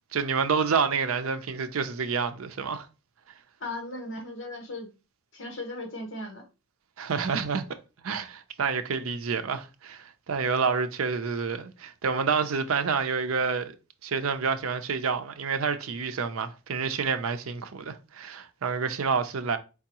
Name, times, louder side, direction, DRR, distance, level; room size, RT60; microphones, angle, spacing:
voice 1, 0.1-2.9 7.0-7.7 8.0-13.7 14.0-19.6, right 5 dB, 85° right, 0.5 m, -28 dB
voice 2, 3.6-4.9 5.3-6.5, left 2 dB, 60° left, 1.3 m, -37 dB
4.7 x 3.5 x 2.9 m
head